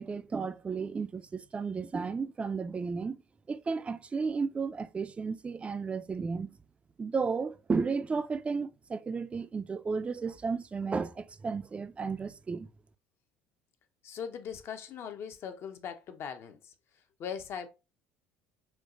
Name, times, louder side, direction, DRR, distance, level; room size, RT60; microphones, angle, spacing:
voice 1, 0.0-3.2 3.5-6.5 7.0-12.7, right 5 dB, 25° right, 0.3 m, -33 dB
voice 2, 14.0-16.7 17.2-17.7, left 7 dB, 50° left, 0.6 m, -40 dB
4.4 x 2.3 x 2.4 m
hypercardioid pair, 65°, 5 cm